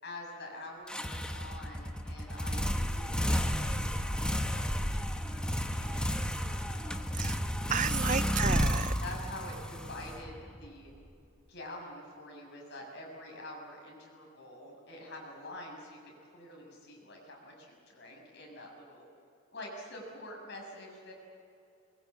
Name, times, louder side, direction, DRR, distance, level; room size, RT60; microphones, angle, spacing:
voice 1, 0.0-7.2 8.1-8.6 9.0-10.4 10.6-10.9 11.5-19.1 19.5-21.1, left 1 dB, 55° left, 0 dB, 6.8 m, -47 dB
sound 1, 0.9-10.7, equal, 5° left, 1.1 m, -32 dB
voice 2, 7.7-8.9, right 7 dB, 35° right, 15 dB, 0.5 m, -32 dB
22.5 x 21.5 x 8.7 m, 2.6 s
head